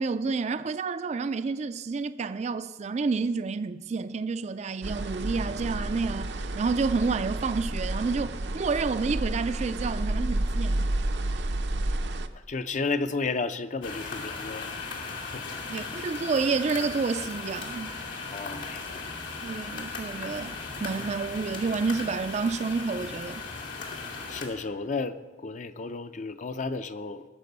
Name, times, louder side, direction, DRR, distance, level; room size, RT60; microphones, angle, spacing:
voice 1, 0.0-10.9 15.7-18.0 19.4-23.4, right 4 dB, 40° right, 0.4 m, -29 dB
sound 1, 4.8-12.3, right 1 dB, 75° right, 0.7 m, -30 dB
voice 2, 12.3-14.8 15.0-15.4 18.3-19.0 24.3-27.3, left 4 dB, 45° left, 0.6 m, -33 dB
sound 2, 13.8-24.5, left 4 dB, 85° left, 2.5 m, -37 dB
20.0 x 6.8 x 5.4 m
head